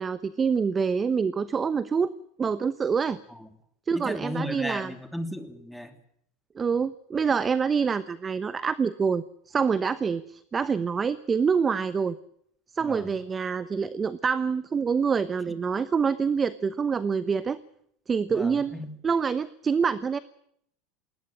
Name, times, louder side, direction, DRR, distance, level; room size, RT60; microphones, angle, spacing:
voice 1, 0.0-2.1 2.4-3.2 3.9-4.9 6.6-12.2 12.7-17.6 18.1-18.8 19.0-20.2, right 6 dB, 25° right, 15 dB, 0.9 m, -26 dB
voice 2, 3.9-5.9 12.8-13.1 18.3-19.0, left 1 dB, ahead, 7 dB, 2.7 m, -35 dB
19.5 x 19.5 x 8.9 m, 0.69 s
supercardioid pair, 115°, 0 cm